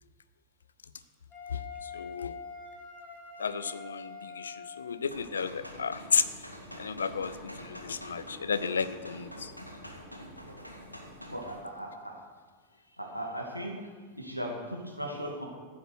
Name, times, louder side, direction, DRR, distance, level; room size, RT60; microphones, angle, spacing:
Wind instrument woodwind instrument, 1.3-5.1, left 5 dB, 25° left, 3.2 m, -45 dB
voice 1, 1.9-2.3 3.4-6.2 6.8-9.5, left 6 dB, 70° left, 14 dB, 0.7 m, -32 dB
sound 1, 5.0-11.6, equal, 90° left, 1.9 m, -46 dB
voice 2, 11.3-12.1 13.0-13.7 14.2-15.5, equal, 90° right, 0 dB, 2.3 m, -37 dB
14.5 x 8.4 x 6.3 m, 1.5 s
figure-of-eight pair, 90°, 0 cm